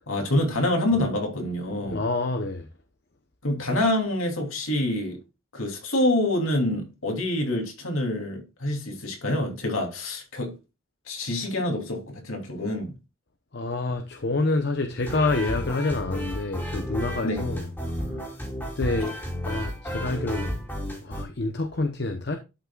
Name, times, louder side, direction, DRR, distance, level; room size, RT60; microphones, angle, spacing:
voice 1, 0.1-2.0 3.4-5.2 5.5-10.5 11.1-12.9 17.2-17.4, left 1 dB, 85° left, 3.0 m, -26 dB
voice 2, 1.8-2.7 13.5-17.7 18.1-18.4 18.8-19.2 19.4-20.5 21.0-22.4, left 2 dB, 50° left, 0.8 m, -27 dB
sound 1, 15.0-21.2, equal, 10° left, 3.2 m, -32 dB
11.5 x 5.8 x 2.3 m
head